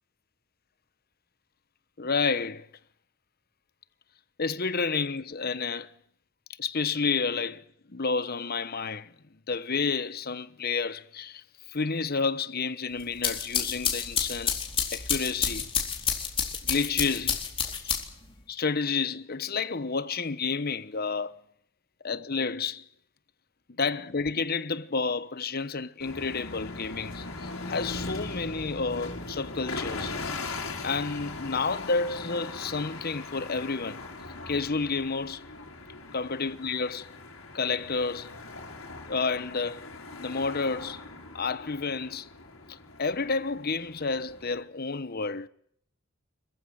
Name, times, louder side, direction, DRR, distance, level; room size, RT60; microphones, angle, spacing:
voice 1, 2.0-2.7 4.4-5.9 6.6-9.1 9.5-11.4 11.7-14.6 14.9-15.7 16.6-17.4 17.8-18.0 18.5-21.4 22.0-22.9 23.8-30.2 30.4-34.0 34.5-35.5 36.1-37.1 37.5-38.3 39.1-39.9 40.2-41.0 41.3-42.3 42.7-45.5, left 4 dB, 45° left, 1.1 m, -30 dB
sound 1, 13.0-18.3, left 7 dB, 25° left, 4.1 m, -29 dB
sound 2, 26.0-44.6, left 3 dB, 75° left, 5.3 m, -40 dB
27.0 x 15.0 x 9.3 m
head